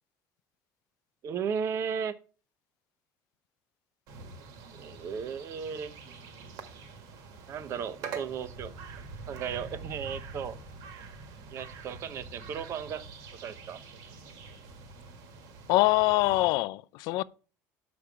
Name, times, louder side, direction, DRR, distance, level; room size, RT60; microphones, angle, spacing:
voice 1, 1.2-2.1 4.8-5.9 7.5-8.7 9.3-10.6 11.5-13.0 13.4-13.8, right 7 dB, 40° right, 0.8 m, -35 dB
sound 1, 4.1-16.5, right 4 dB, 65° right, 1.6 m, -45 dB
voice 2, 15.7-17.2, left 19 dB, 70° left, 0.4 m, -24 dB
6.6 x 6.1 x 6.9 m
cardioid pair, 150°, 7 cm